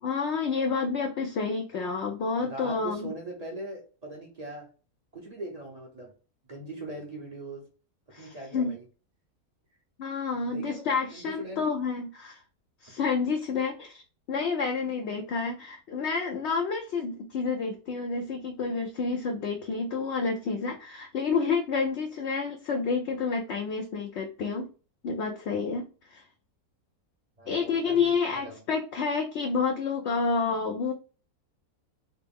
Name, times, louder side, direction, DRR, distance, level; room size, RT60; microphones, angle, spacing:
voice 1, 0.0-3.1 8.1-8.7 10.0-12.4 12.8-14.0 14.3-24.7 25.0-26.2 27.5-30.9, left 5 dB, 65° left, 3 dB, 0.7 m, -29 dB
voice 2, 2.4-4.7 5.1-6.1 6.5-7.6 8.2-8.8 10.3-11.7 27.4-28.6, right 1 dB, 35° right, 0 dB, 0.6 m, -40 dB
4.3 x 2.0 x 3.5 m, 0.36 s
omnidirectional pair, 1.6 m